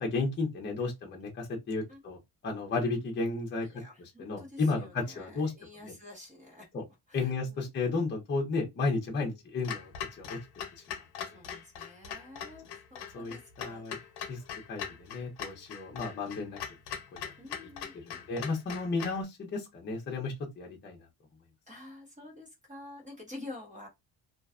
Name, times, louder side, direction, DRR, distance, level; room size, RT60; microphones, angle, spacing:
voice 1, 0.0-2.2 2.4-3.7 4.2-5.5 5.8-5.9 6.7-6.8 7.1-9.9 10.2-10.4 13.1-14.0 14.3-14.4 14.7-16.6 17.1-17.3 18.0-21.0, left 3 dB, 25° left, 0.7 m, -33 dB
voice 2, 3.6-6.7 7.1-7.6 9.2-9.3 11.3-14.1 17.4-18.2 21.7-23.9, left 2 dB, 20° right, 0.8 m, -49 dB
Clock, 9.6-19.2, left 8 dB, 75° left, 0.7 m, -41 dB
2.5 x 2.2 x 2.4 m
cardioid pair, 160°, 40 cm